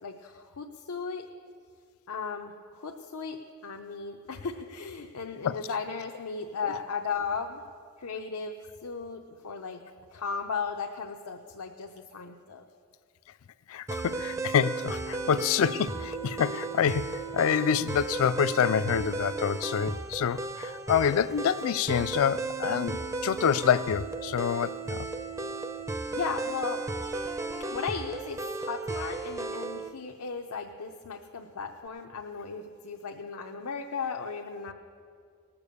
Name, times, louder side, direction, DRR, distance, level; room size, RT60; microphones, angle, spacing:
voice 1, 0.0-1.3 2.1-7.6 8.0-9.8 10.1-12.6 26.1-26.8 27.7-34.7, left 5 dB, 90° left, 0.7 m, -36 dB
voice 2, 13.7-25.1, left 8 dB, 65° left, 0.4 m, -27 dB
sound 1, 13.9-29.9, right 3 dB, 15° right, 0.4 m, -35 dB
19.0 x 6.8 x 6.8 m
head